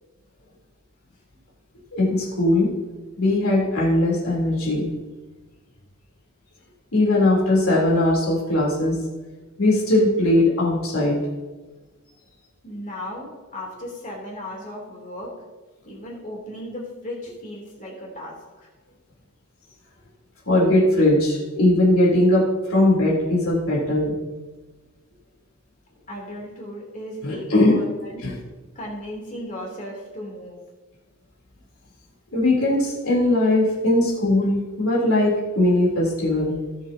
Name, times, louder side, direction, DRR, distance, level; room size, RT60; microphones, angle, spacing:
voice 1, 1.9-2.7 3.2-4.9 6.9-9.0 9.6-11.2 20.5-24.2 27.2-27.8 28.2-28.3 32.3-36.5, left 1 dB, 70° left, -3 dB, 3.6 m, -19 dB
voice 2, 12.6-15.3 15.8-18.7 26.1-28.3 28.7-30.6, equal, 35° left, -3 dB, 3.2 m, -36 dB
18.5 x 7.6 x 2.9 m, 1.3 s
head